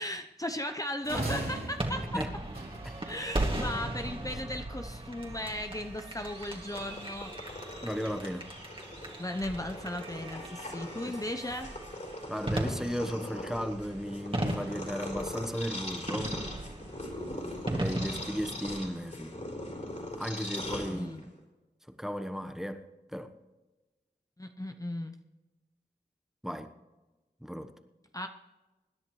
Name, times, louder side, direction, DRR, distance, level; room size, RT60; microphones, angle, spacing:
voice 1, 0.0-2.2 3.1-7.3 9.2-11.7 20.9-21.2 24.4-25.1 28.1-28.3, left 1 dB, 20° left, 6 dB, 0.8 m, -36 dB
sound 1, 1.0-3.3, right 2 dB, 55° right, 3.5 m, -38 dB
sound 2, 1.8-18.9, right 1 dB, 30° right, 2.3 m, -38 dB
Purr, 6.2-21.4, left 1 dB, 45° left, 4.3 m, -41 dB
voice 2, 7.8-8.5 11.1-11.2 12.3-16.4 17.6-19.4 20.2-21.3 22.0-22.9 23.1-23.3 26.4-26.7 27.4-27.7, equal, ahead, 7 dB, 1.1 m, -35 dB
25.5 x 10.5 x 3.2 m, 1.1 s
wide cardioid pair, 50°, 18 cm